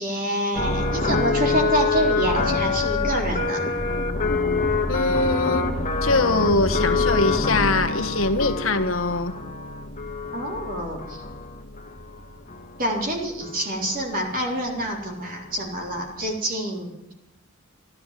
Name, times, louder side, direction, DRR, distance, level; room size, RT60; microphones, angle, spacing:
voice 1, 0.0-3.6 10.3-11.2 12.8-17.1, right 1 dB, 40° right, 0 dB, 3.6 m, -27 dB
sound 1, 0.5-13.1 13.4-14.0 14.3-14.8 15.3-15.4 15.5-15.9 16.2-16.3, left 3 dB, 35° left, 1.7 m, -26 dB
voice 2, 4.9-5.7 6.0-9.3, left 3 dB, 75° left, 8 dB, 1.4 m, -22 dB
13.5 x 13.0 x 7.5 m, 0.90 s
head